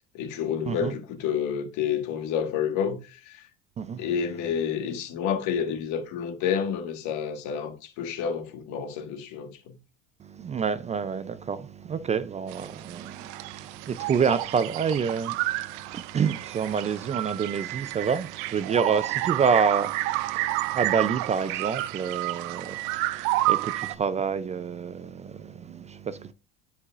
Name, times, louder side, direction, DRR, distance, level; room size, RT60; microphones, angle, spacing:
voice 1, 0.1-3.4 4.0-9.6, left 7 dB, 65° left, 1.6 m, -29 dB
voice 2, 3.8-4.1 10.2-26.3, right 6 dB, 20° right, 0.3 m, -28 dB
sound 1, 12.5-24.0, right 17 dB, 70° right, 0.6 m, -30 dB
11.0 x 4.9 x 2.4 m
supercardioid pair, 125°, 31 cm